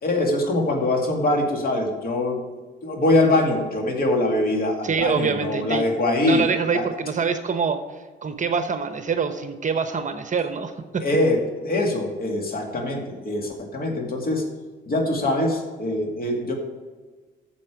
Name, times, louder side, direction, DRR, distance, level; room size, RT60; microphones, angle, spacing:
voice 1, 0.0-2.4 2.8-6.8 11.0-14.4 14.9-16.5, left 2 dB, 50° left, 2 dB, 2.2 m, -23 dB
voice 2, 4.8-5.8 6.2-7.8 8.2-11.0, right 6 dB, 40° right, 8 dB, 0.9 m, -25 dB
9.8 x 7.0 x 4.9 m, 1.4 s
cardioid pair, 90°, 20 cm